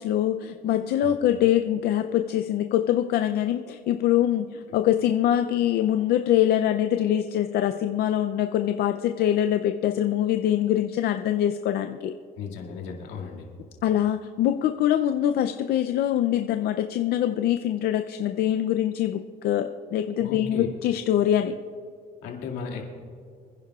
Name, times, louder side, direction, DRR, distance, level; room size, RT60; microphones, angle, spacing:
voice 1, 0.0-12.1 13.8-21.5, left 11 dB, 70° left, 7 dB, 0.5 m, -24 dB
voice 2, 12.4-13.5 20.2-20.7 22.2-22.9, left 6 dB, 90° left, 0 dB, 2.2 m, -35 dB
26.0 x 10.5 x 2.4 m, 2.2 s
cardioid pair, 110°, 17 cm